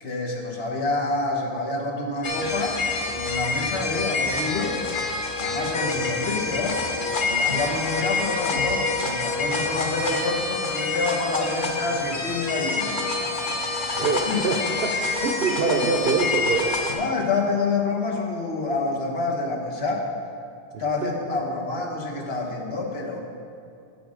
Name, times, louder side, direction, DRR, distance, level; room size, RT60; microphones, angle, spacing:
voice 1, 0.0-4.8 5.4-13.6 14.3-14.4 16.9-20.1 20.8-23.2, left 3 dB, 80° left, -1 dB, 1.4 m, -28 dB
sound 1, 2.2-16.9, left 3 dB, 55° left, 1.0 m, -27 dB
voice 2, 14.0-16.8 20.7-21.1, right 4 dB, 70° right, 5 dB, 1.0 m, -25 dB
7.8 x 7.6 x 5.0 m, 2.5 s
omnidirectional pair, 1.0 m